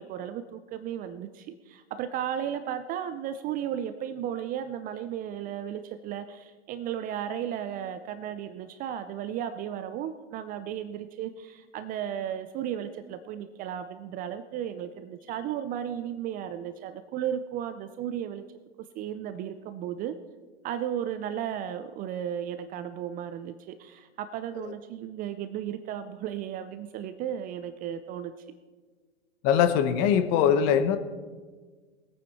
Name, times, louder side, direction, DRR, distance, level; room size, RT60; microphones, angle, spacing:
voice 1, 0.0-18.4 19.0-20.2 20.6-28.3, right 10 dB, 25° right, 11 dB, 0.4 m, -34 dB
voice 2, 29.4-31.0, left 8 dB, 40° left, 10 dB, 1.0 m, -22 dB
20.0 x 9.0 x 4.2 m, 1.4 s
hypercardioid pair, 110°, 36 cm